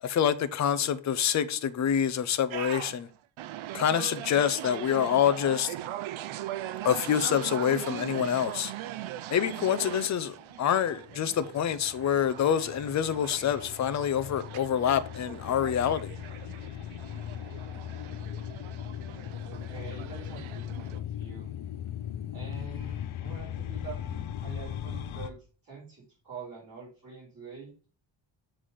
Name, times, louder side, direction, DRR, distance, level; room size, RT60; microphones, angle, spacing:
voice 1, 0.0-3.1 3.7-5.8 6.8-8.7 9.3-16.1, left 9 dB, 40° left, 0.4 m, -26 dB
sound 1, 2.5-21.0, right 13 dB, 80° right, 0.5 m, -40 dB
sound 2, 10.5-25.3, left 10 dB, 80° left, 0.7 m, -39 dB
voice 2, 19.1-21.6 22.3-25.4 25.6-27.9, right 5 dB, 45° right, 3.8 m, -45 dB
7.3 x 3.3 x 5.4 m
wide cardioid pair, 175°, 48 cm